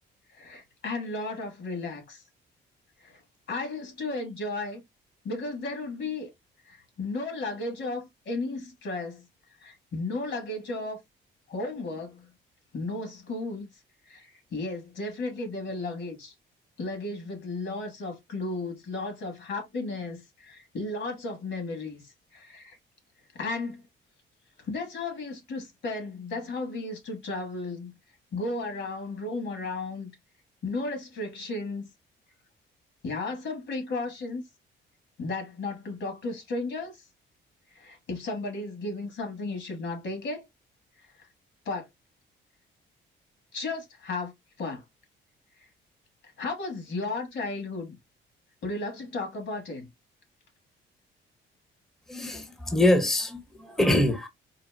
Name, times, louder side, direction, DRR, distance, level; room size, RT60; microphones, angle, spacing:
voice 1, 0.3-2.2 3.0-3.2 3.5-4.8 5.2-6.3 6.6-9.2 9.6-11.0 11.5-12.3 12.7-13.7 14.1-16.3 16.8-22.8 23.3-23.8 24.6-27.9 28.3-30.1 30.6-31.9 33.0-34.4 35.2-37.0 37.7-40.4 41.6-41.9 43.5-44.3 44.6-44.8 46.4-48.0 48.6-49.9, left 2 dB, 65° left, 1.5 m, -34 dB
voice 2, 52.1-54.3, left 1 dB, ahead, 0.7 m, -24 dB
4.0 x 2.1 x 2.2 m
cardioid pair, 90°, 20 cm